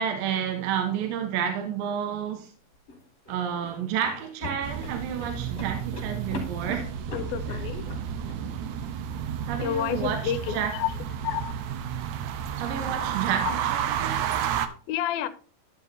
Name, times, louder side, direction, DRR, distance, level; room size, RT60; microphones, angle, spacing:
voice 1, 0.0-2.5 3.3-6.9 7.5-7.6 9.5-10.8 12.6-14.5, right 8 dB, 70° right, 2.7 m, -30 dB
sound 1, 2.7-8.4, left 2 dB, 30° left, 4.6 m, -40 dB
sound 2, 4.6-14.7, right 9 dB, 90° right, 1.6 m, -31 dB
voice 2, 7.1-7.9 9.6-10.9 11.2-11.5 13.4-13.6 14.3-14.6 14.9-15.3, left 10 dB, 80° left, 2.5 m, -30 dB
13.0 x 7.0 x 2.7 m
omnidirectional pair, 4.4 m